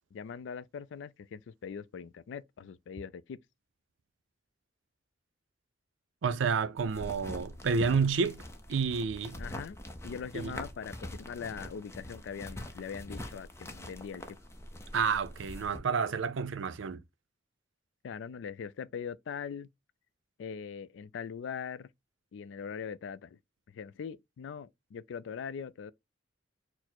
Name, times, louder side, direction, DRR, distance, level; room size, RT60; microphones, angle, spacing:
voice 1, 0.1-3.4 9.4-9.8 10.0-14.2 18.0-19.7 20.4-21.9 22.3-23.4 23.7-25.9, left 6 dB, 75° left, 0.3 m, -41 dB
voice 2, 6.2-8.4 8.7-9.4 10.3-10.6 14.9-17.0, right 5 dB, 85° right, 0.5 m, -30 dB
sound 1, 6.8-15.8, left 1 dB, 15° left, 0.5 m, -44 dB
4.2 x 2.0 x 4.3 m
head